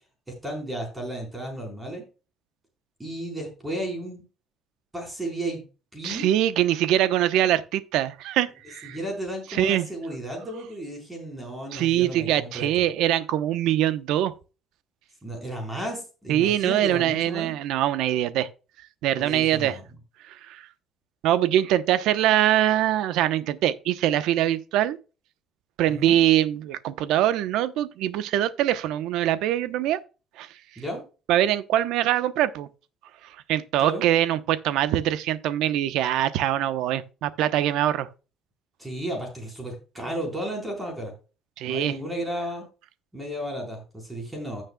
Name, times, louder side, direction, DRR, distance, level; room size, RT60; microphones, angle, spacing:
voice 1, 0.3-2.0 3.0-4.2 4.9-5.6 5.9-6.3 8.8-12.9 15.2-17.6 19.2-19.9 25.9-26.2 30.8-31.0 33.8-34.0 38.8-41.1 41.7-42.7 43.1-44.6, right 1 dB, 10° right, 4.3 m, -33 dB
voice 2, 6.0-9.0 9.6-9.8 11.7-14.3 16.3-18.5 19.0-19.8 20.3-20.6 21.2-25.0 25.8-30.0 30.4-30.5 31.3-32.7 33.5-38.1 41.6-41.9, right 12 dB, 75° right, 0.9 m, -23 dB
16.0 x 6.4 x 2.3 m
cardioid pair, 150°, 0 cm